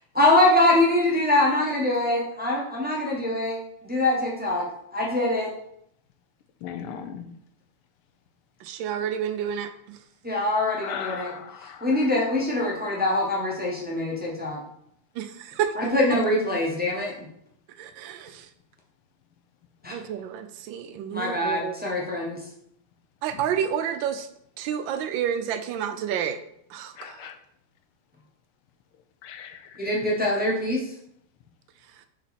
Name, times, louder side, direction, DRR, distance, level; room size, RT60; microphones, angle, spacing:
voice 1, 0.1-5.5 10.2-11.3 11.6-14.6 15.8-17.3 19.8-19.9 21.1-22.4 29.8-30.9, left 1 dB, 15° right, -4 dB, 0.3 m, -24 dB
voice 2, 6.6-7.3 10.8-11.9 27.0-27.4 29.2-29.6, left 8 dB, 80° left, 8 dB, 1.6 m, -37 dB
voice 3, 8.6-10.0 15.2-15.7 17.8-18.5 19.9-21.8 23.2-24.3 24.6-26.4 26.7-27.3, right 9 dB, 75° right, 9 dB, 1.1 m, -30 dB
6.2 x 3.9 x 4.2 m, 0.73 s
omnidirectional pair, 2.4 m